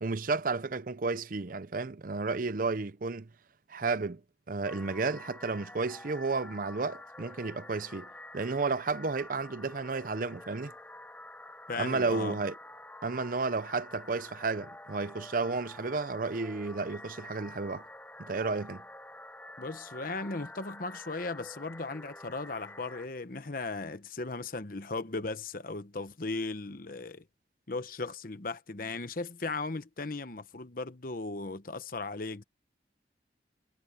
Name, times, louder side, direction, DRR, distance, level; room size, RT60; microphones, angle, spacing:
voice 1, 0.0-3.3 3.7-4.2 4.5-8.1 8.3-10.7 11.8-12.5 13.0-17.9 18.2-18.8, right 4 dB, 50° right, 0.6 m, -32 dB
sound 1, 4.6-23.1, left 1 dB, 10° left, 1.0 m, -48 dB
voice 2, 11.7-12.4 19.6-27.3 27.7-32.4, left 3 dB, 50° left, 1.0 m, -37 dB
head